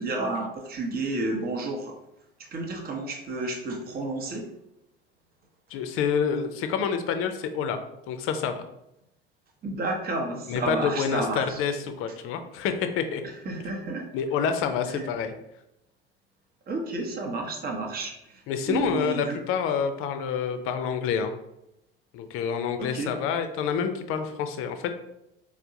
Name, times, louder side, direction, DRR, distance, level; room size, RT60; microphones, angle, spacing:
voice 1, 0.0-1.9 2.5-4.5 9.6-11.6 13.4-14.0 14.9-15.1 16.7-18.4 18.7-19.4 22.8-23.1, right 2 dB, 30° right, 1 dB, 0.8 m, -31 dB
voice 2, 5.7-7.8 8.1-8.6 10.5-13.2 14.1-15.3 18.5-21.3 22.1-24.9, left 7 dB, 45° left, 8 dB, 0.5 m, -28 dB
4.4 x 2.1 x 2.6 m, 0.85 s
hypercardioid pair, 70°, 30 cm